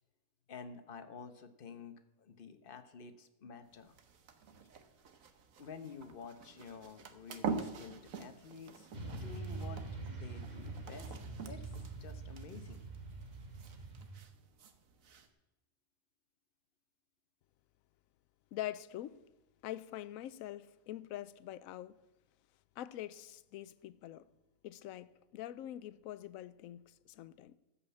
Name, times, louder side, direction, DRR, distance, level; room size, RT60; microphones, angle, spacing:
voice 1, 0.5-4.0 5.6-9.8 10.1-11.2 11.4-12.8, left 5 dB, 45° left, 1.0 m, -50 dB
sound 1, 3.7-15.3, right 5 dB, 70° right, 1.5 m, -46 dB
Motorcycle / Traffic noise roadway noise, 8.9-14.2, right 3 dB, 30° right, 1.6 m, -44 dB
voice 2, 18.5-19.2 19.6-21.9 22.8-24.3 24.6-27.6, left 13 dB, 75° left, 1.0 m, -44 dB
14.0 x 5.7 x 8.3 m
omnidirectional pair, 1.5 m